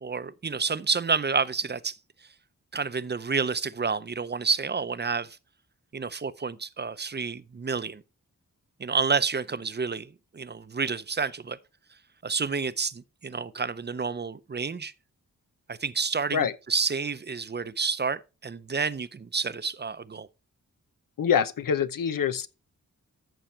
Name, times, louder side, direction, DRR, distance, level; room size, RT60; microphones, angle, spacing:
voice 1, 0.0-2.0 2.7-5.4 5.9-8.0 8.8-11.6 12.2-14.9 15.7-20.3, right 5 dB, 35° right, 0.6 m, -29 dB
voice 2, 21.2-22.5, left 7 dB, 85° left, 0.8 m, -25 dB
14.0 x 6.2 x 4.4 m
wide cardioid pair, 120°, 32 cm